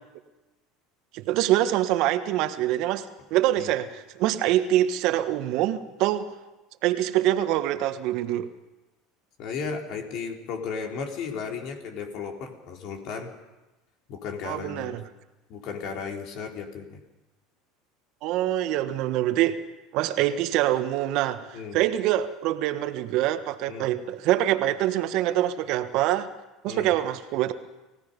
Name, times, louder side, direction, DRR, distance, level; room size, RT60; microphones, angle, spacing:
voice 1, 1.1-6.3 6.8-8.5 14.4-15.0 18.2-19.6 19.9-26.3 26.6-27.5, right 13 dB, 65° right, 10 dB, 1.5 m, -25 dB
voice 2, 9.4-13.3 14.1-15.0 15.5-17.0 21.5-21.8 23.7-23.9 26.7-26.9, left 5 dB, 60° left, 2 dB, 3.8 m, -35 dB
30.0 x 17.0 x 5.4 m, 1.1 s
hypercardioid pair, 90°, 0 cm